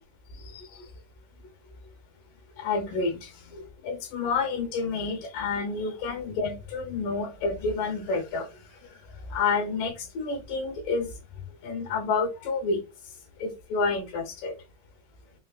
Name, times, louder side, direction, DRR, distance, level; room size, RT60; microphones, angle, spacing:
voice 1, 0.4-0.8 2.6-8.5 9.3-11.1 11.6-12.8 13.4-14.5, left 4 dB, 75° left, 2.2 m, -29 dB
5.8 x 2.1 x 2.3 m
omnidirectional pair, 4.3 m